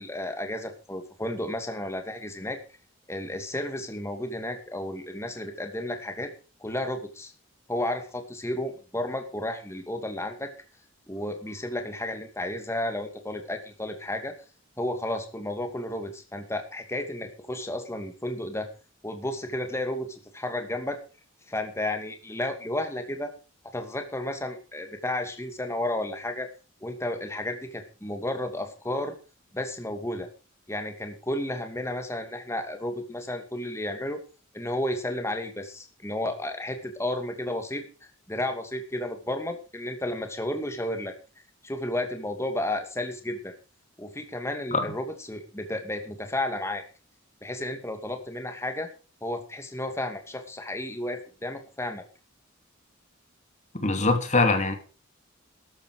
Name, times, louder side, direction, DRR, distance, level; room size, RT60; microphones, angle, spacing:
voice 1, 0.0-2.6 3.1-6.3 6.6-7.3 7.7-10.5 11.1-14.3 14.8-18.7 19.0-21.0 21.5-23.3 23.7-26.5 26.8-29.2 29.5-30.3 30.7-34.2 34.5-37.8 38.3-41.1 41.6-43.5 44.0-46.8 47.4-48.9 49.2-52.0, left 1 dB, 15° left, 2.6 m, -32 dB
voice 2, 53.7-54.8, left 3 dB, 35° left, 2.9 m, -23 dB
14.0 x 11.5 x 5.0 m
head